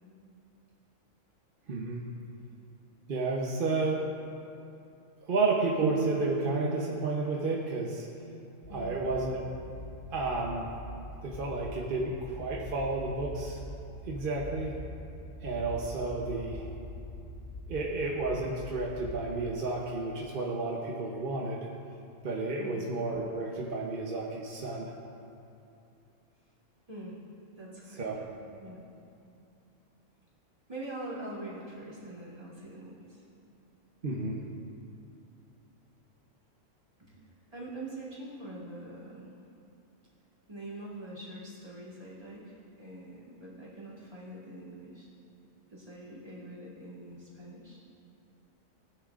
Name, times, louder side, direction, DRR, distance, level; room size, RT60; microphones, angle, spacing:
voice 1, 1.7-2.0 3.1-4.0 5.3-8.1 8.7-9.4 10.1-10.7 11.2-13.6 14.0-14.7 15.4-16.7 17.7-21.7 22.2-24.9 28.0-28.2 34.0-34.4, right 3 dB, 45° right, -2 dB, 0.9 m, -31 dB
sound 1, 5.8-9.0, right 6 dB, 75° right, 1.0 m, -36 dB
sound 2, 8.6-19.5, left 1 dB, 60° left, 1.1 m, -44 dB
voice 2, 8.7-9.1 22.6-22.9 26.9-27.2 27.5-28.1 28.6-28.8 30.7-33.2 34.4-34.5 37.0-39.3 40.5-45.1 45.7-47.8, right 1 dB, 25° right, -8 dB, 2.7 m, -44 dB
17.5 x 9.8 x 2.5 m, 2.7 s
omnidirectional pair, 1.4 m